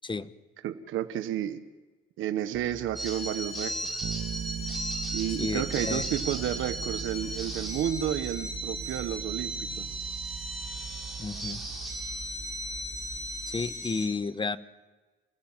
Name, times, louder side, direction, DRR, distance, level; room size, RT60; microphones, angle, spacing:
voice 1, 0.6-1.6 2.2-3.7 4.0-4.1 5.1-9.9, right 11 dB, 85° right, 9 dB, 1.3 m, -31 dB
sound 1, 2.5-13.2, right 3 dB, 45° right, 7.0 m, -48 dB
sound 2, 3.0-14.1, right 1 dB, ahead, 7.5 m, -36 dB
Bass guitar, 4.0-13.9, right 9 dB, 60° right, 1.6 m, -41 dB
voice 2, 5.4-6.0 11.2-11.6 13.5-14.6, left 4 dB, 25° left, 13 dB, 1.1 m, -32 dB
28.5 x 17.0 x 7.4 m, 1.3 s
cardioid pair, 90°, 20 cm